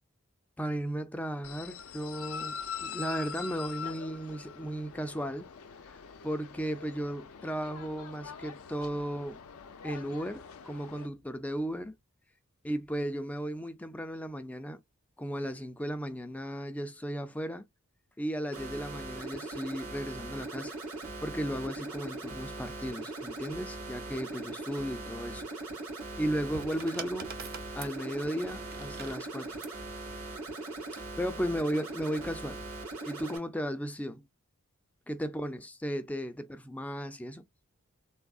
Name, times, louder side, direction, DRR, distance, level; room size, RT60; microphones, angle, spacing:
voice 1, 0.6-5.5 5.9-9.4 9.8-11.9 12.6-14.8 15.2-17.6 18.2-20.7 21.2-25.4 26.2-27.3 27.7-29.6 31.2-32.6 33.1-34.3 35.1-37.4, equal, 5° left, 0.3 m, -35 dB
sound 1, 1.4-11.1, left 6 dB, 85° left, 0.5 m, -43 dB
sound 2, 18.5-33.4, right 2 dB, 85° right, 1.7 m, -40 dB
sound 3, 26.3-29.8 30.9-31.2, right 6 dB, 45° right, 0.6 m, -46 dB
3.5 x 2.0 x 2.3 m
head